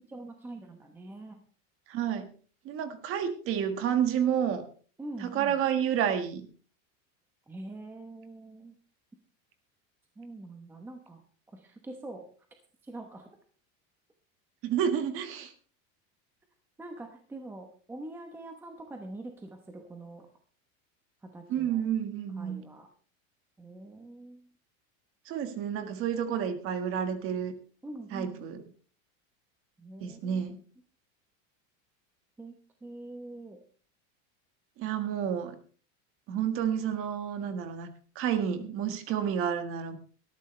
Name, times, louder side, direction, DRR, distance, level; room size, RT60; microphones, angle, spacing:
voice 1, 0.1-1.4 5.0-5.6 7.5-8.7 10.2-11.2 11.5-12.3 12.8-13.3 16.8-20.3 21.2-21.8 22.4-22.9 23.6-24.5 27.8-28.7 29.8-30.4 32.4-32.5 32.8-33.6, right 2 dB, 5° right, 4 dB, 0.9 m, -44 dB
voice 2, 1.9-2.3 2.6-4.6 5.2-6.5 14.6-15.5 21.5-22.6 25.2-27.6 28.1-28.6 30.0-30.6 34.8-35.5 36.3-37.9 38.1-40.0, right 8 dB, 30° right, 9 dB, 1.6 m, -30 dB
18.5 x 13.5 x 3.2 m, 0.40 s
supercardioid pair, 180°, 41 cm